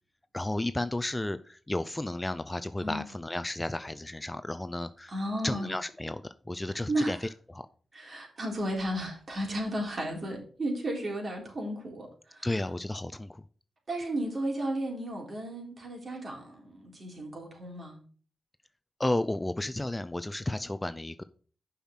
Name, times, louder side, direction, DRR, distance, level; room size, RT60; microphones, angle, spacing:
voice 1, 0.3-5.1 5.4-7.7 12.4-13.4 19.0-21.2, left 1 dB, 15° left, 12 dB, 0.5 m, -33 dB
voice 2, 5.1-5.7 6.9-7.3 7.9-12.6 13.9-18.0, right 1 dB, 45° right, 0 dB, 3.8 m, -34 dB
6.9 x 5.8 x 6.2 m, 0.43 s
cardioid pair, 65°, 0 cm